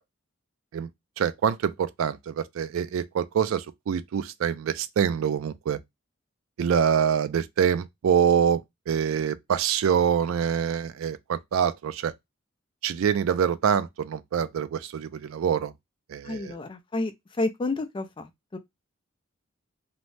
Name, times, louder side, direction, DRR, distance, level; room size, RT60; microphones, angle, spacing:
voice 1, 1.2-5.8 6.6-12.1 12.8-15.7 16.1-16.6, right 8 dB, 80° right, 0.3 m, -25 dB
voice 2, 16.2-17.1 17.4-18.6, left 2 dB, 25° left, 0.3 m, -30 dB
2.7 x 2.1 x 3.1 m
head